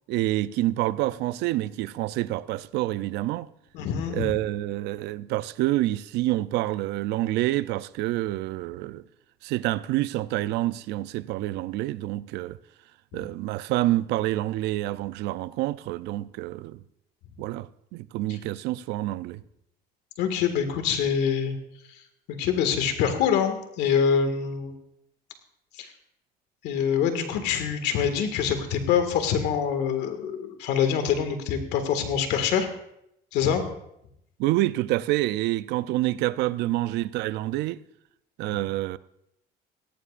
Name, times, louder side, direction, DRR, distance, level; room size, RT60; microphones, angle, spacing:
voice 1, 0.1-3.5 4.1-9.0 9.4-12.6 13.1-16.8 17.4-19.4 34.4-37.8 38.4-39.0, right 16 dB, 90° right, 0.5 m, -27 dB
voice 2, 3.7-4.3 13.1-13.2 18.3-18.4 20.2-21.6 22.3-24.7 25.8-25.9 26.6-32.7 33.3-33.6, left 7 dB, 90° left, 2.0 m, -25 dB
17.5 x 17.0 x 2.5 m
cardioid pair, 110°, 17 cm